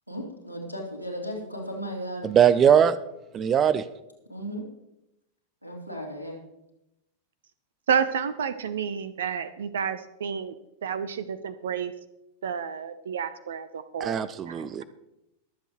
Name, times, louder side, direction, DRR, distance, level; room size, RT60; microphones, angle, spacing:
voice 1, 0.1-2.3 4.3-4.6 5.6-6.4, equal, 90° right, 0 dB, 2.8 m, -35 dB
voice 2, 2.2-2.9 3.3-3.8 14.0-14.8, right 8 dB, 25° right, 16 dB, 0.7 m, -20 dB
voice 3, 7.9-10.5 10.8-11.9 12.4-14.8, right 7 dB, 65° right, 14 dB, 0.6 m, -30 dB
22.5 x 7.9 x 3.1 m, 0.88 s
figure-of-eight pair, 90°, 0 cm